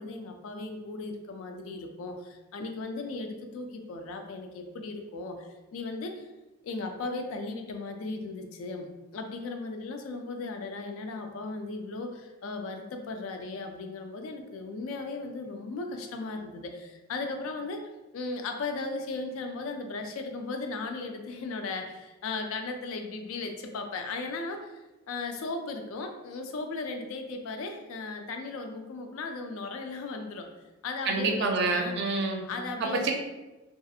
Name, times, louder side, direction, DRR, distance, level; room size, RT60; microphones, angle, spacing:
voice 1, 0.0-6.3 6.6-8.9 9.1-24.7 25.1-30.5 30.8-31.9 32.5-33.1, left 3 dB, 70° left, 5 dB, 0.4 m, -36 dB
voice 2, 31.1-32.4 32.8-33.1, right 3 dB, 55° right, 2 dB, 0.4 m, -27 dB
2.4 x 2.4 x 2.6 m, 1.1 s
head